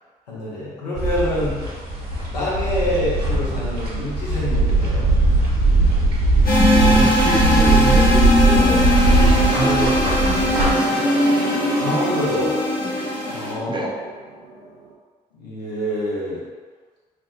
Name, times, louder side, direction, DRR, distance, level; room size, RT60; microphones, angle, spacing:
voice 1, 0.3-1.6 2.3-5.1 11.7-12.5 13.3-13.9 15.4-16.4, left 1 dB, 90° left, -7 dB, 0.6 m, -26 dB
sound 1, 1.0-10.7, right 2 dB, 50° right, 0.9 m, -19 dB
sound 2, 6.5-13.5, left 1 dB, 45° left, 0.9 m, -19 dB
voice 2, 6.8-9.0 9.5-11.3 13.7-14.0, right 3 dB, 20° right, 0 dB, 0.5 m, -27 dB
sound 3, 7.8-14.9, right 4 dB, 75° right, 0.5 m, -33 dB
2.9 x 2.1 x 3.1 m, 1.5 s
figure-of-eight pair, 40°, 21 cm